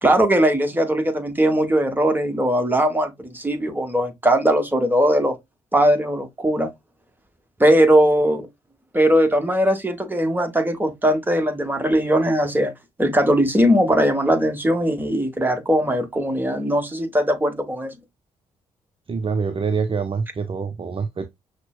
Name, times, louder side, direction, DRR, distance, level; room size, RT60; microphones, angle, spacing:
voice 1, 0.0-5.3 5.7-6.7 7.6-8.5 8.9-12.7 13.0-17.9, equal, 10° right, 1.2 m, -19 dB
voice 2, 19.1-21.3, right 5 dB, 35° right, 0.6 m, -25 dB
5.9 x 2.1 x 2.3 m
hypercardioid pair, 40°, 16 cm